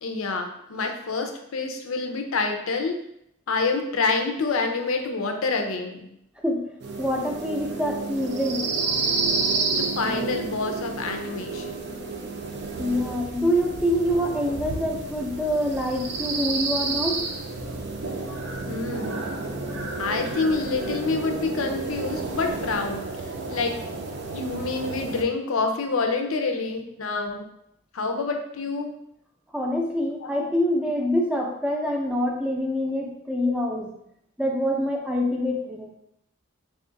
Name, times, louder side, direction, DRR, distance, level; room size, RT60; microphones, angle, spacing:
voice 1, 0.0-3.0 3.5-6.1 9.8-11.8 18.7-19.1 20.0-23.1 23.5-23.8 24.3-27.5 27.9-28.9 30.2-30.5, left 3 dB, 85° left, 4 dB, 0.5 m, -27 dB
voice 2, 6.4-8.7 12.8-17.3 19.2-19.3 29.5-33.9 34.4-35.9, equal, 5° right, 0 dB, 0.5 m, -26 dB
sound 1, 6.8-25.2, right 3 dB, 55° right, 0.5 m, -30 dB
3.5 x 2.4 x 3.8 m, 0.76 s
head